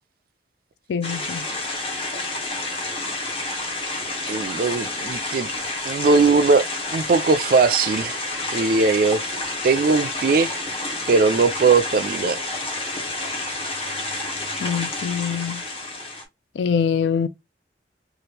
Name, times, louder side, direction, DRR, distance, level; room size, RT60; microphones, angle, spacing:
voice 1, 0.9-1.4 14.6-15.6 16.6-17.3, left 7 dB, 75° left, 0.3 m, -24 dB
sound 1, 1.0-16.2, left 2 dB, 30° left, 0.9 m, -29 dB
voice 2, 4.3-5.5 5.8-6.7 6.9-9.2 9.6-10.6 11.1-12.5, right 4 dB, 50° right, 0.3 m, -19 dB
2.9 x 2.4 x 3.2 m
head